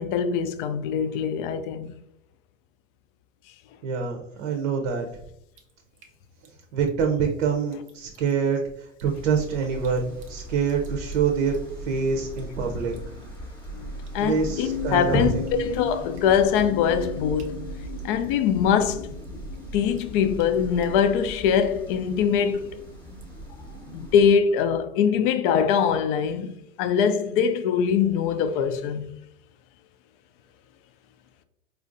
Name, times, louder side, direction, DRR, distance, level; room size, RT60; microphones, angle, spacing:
voice 1, 0.0-1.9 13.7-17.6 18.0-19.1 19.7-22.7 23.9-26.5 26.8-29.1, left 7 dB, 45° left, 0.4 m, -23 dB
voice 2, 3.8-5.1 6.7-11.6 11.8-12.9 14.2-15.5, right 6 dB, 65° right, 0.7 m, -26 dB
Drip, 5.5-23.8, right 2 dB, 20° right, 0.3 m, -41 dB
sound 1, 9.0-24.3, right 1 dB, 5° left, 0.8 m, -39 dB
sound 2, 14.5-19.8, left 10 dB, 90° left, 0.6 m, -37 dB
4.3 x 2.5 x 2.5 m
hypercardioid pair, 110°, 40 cm